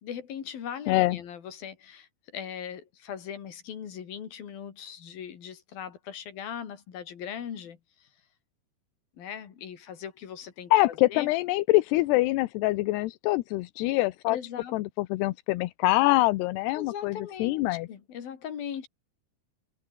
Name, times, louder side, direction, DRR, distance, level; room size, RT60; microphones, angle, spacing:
voice 1, 0.0-8.1 9.2-11.3 14.3-14.8 16.8-18.9, left 8 dB, 55° left, 4.5 m, -39 dB
voice 2, 0.9-1.2 10.7-14.4 14.7-17.9, left 19 dB, 80° left, 2.7 m, -25 dB
omnidirectional pair, 5.1 m